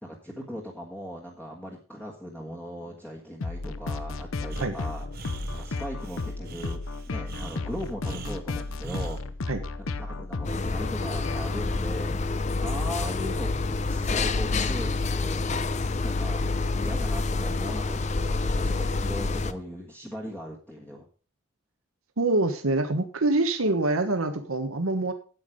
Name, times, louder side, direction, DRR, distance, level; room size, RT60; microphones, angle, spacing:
voice 1, 0.0-5.1 5.5-9.2 9.8-12.1 12.6-15.4 16.0-16.4 16.7-18.0 18.3-21.1, equal, 10° left, -3 dB, 1.5 m, -39 dB
sound 1, 3.4-11.8, left 3 dB, 80° left, 0.8 m, -34 dB
Breathing, 4.5-9.2, right 2 dB, 45° right, 1.0 m, -40 dB
sound 2, 10.4-19.5, left 3 dB, 35° left, 0.5 m, -27 dB
voice 2, 22.2-25.1, right 2 dB, 85° right, 7 dB, 1.1 m, -25 dB
9.1 x 8.6 x 5.0 m, 0.38 s
head